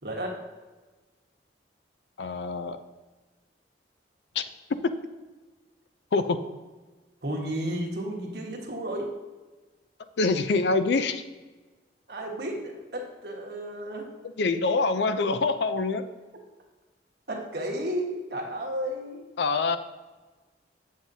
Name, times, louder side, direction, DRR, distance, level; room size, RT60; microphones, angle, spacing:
voice 1, 0.0-0.4 7.2-9.1 12.1-14.1 17.3-19.2, right 1 dB, 55° right, -1 dB, 1.3 m, -33 dB
voice 2, 2.2-2.8 4.4-4.5 6.1-6.4 10.2-11.2 14.4-16.1 19.4-19.8, left 3 dB, 65° left, 10 dB, 0.4 m, -25 dB
7.5 x 7.2 x 2.7 m, 1.2 s
head